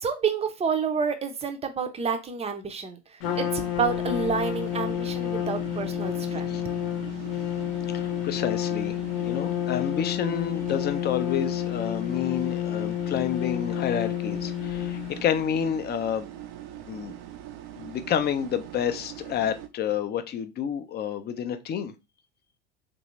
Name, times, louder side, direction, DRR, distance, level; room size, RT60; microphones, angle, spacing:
voice 1, 0.0-3.0 3.4-6.5, right 5 dB, 20° right, 0.6 m, -29 dB
Trumpet, 3.2-15.3, left 12 dB, 65° left, 0.8 m, -30 dB
sound 1, 3.2-19.7, right 12 dB, 60° right, 0.6 m, -41 dB
voice 2, 7.9-9.0 9.2-16.3 16.9-17.2 17.8-21.9, left 9 dB, 30° left, 0.5 m, -29 dB
3.1 x 2.6 x 3.0 m
hypercardioid pair, 90°, 35 cm